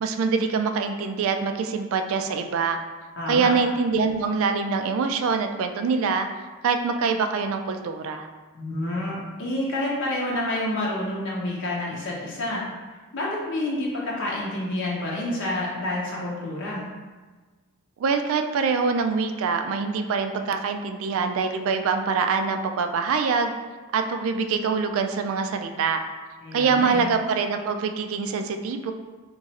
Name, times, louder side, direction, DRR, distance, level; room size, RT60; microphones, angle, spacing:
voice 1, 0.0-2.8 3.3-6.3 6.6-8.3 18.0-23.5 23.9-26.0 26.5-28.9, right 5 dB, 65° right, 6 dB, 0.3 m, -24 dB
voice 2, 3.2-3.5 8.5-12.6 12.9-16.8 26.4-27.1, left 1 dB, 60° left, -5 dB, 0.7 m, -28 dB
3.0 x 2.4 x 4.0 m, 1.3 s
head